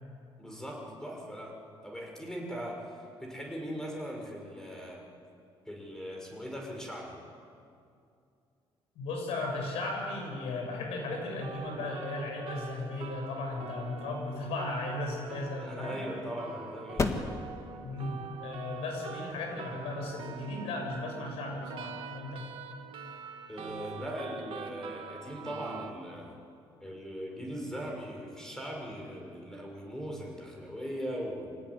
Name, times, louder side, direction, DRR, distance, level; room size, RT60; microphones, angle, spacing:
voice 1, 0.4-2.9 3.2-5.0 5.7-7.2 15.5-17.1 23.5-26.3 26.8-31.5, equal, 5° left, 0 dB, 6.1 m, -39 dB
voice 2, 9.0-16.0 17.8-22.5, left 2 dB, 90° left, 1 dB, 7.0 m, -36 dB
sound 1, 11.1-25.9, right 7 dB, 65° right, 2.0 m, -44 dB
sound 2, 14.8-21.7, left 3 dB, 30° left, 1.7 m, -39 dB
25.0 x 17.0 x 10.0 m, 2.5 s
cardioid pair, 105°, 10 cm